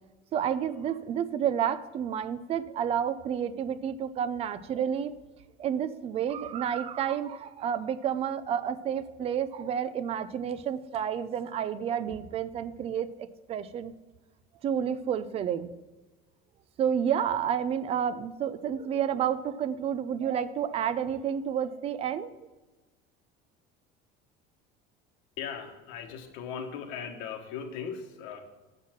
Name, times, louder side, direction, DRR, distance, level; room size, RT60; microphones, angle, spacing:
voice 1, 0.3-5.2 5.6-13.9 14.6-15.7 16.8-22.3, right 8 dB, 30° right, 13 dB, 0.4 m, -30 dB
voice 2, 25.4-28.4, left 7 dB, 70° left, 3 dB, 1.5 m, -38 dB
7.7 x 5.7 x 5.9 m, 1.2 s
cardioid pair, 155°, 20 cm